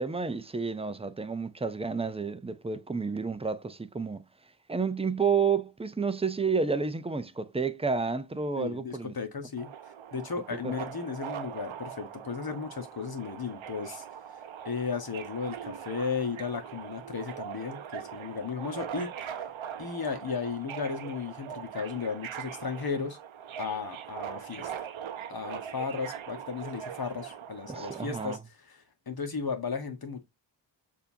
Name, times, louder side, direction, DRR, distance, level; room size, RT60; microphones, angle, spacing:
voice 1, 0.0-4.2 4.7-9.1 10.6-10.7 27.7-28.4, right 5 dB, 15° right, 0.5 m, -30 dB
voice 2, 8.6-9.7 10.1-14.0 14.3-19.1 19.8-23.2 23.6-24.9 25.3-30.2, left 5 dB, 50° left, 1.2 m, -35 dB
Subway metro underground, 9.6-28.4, right 9 dB, 85° right, 0.7 m, -41 dB
6.7 x 2.8 x 2.7 m
wide cardioid pair, 90°, 47 cm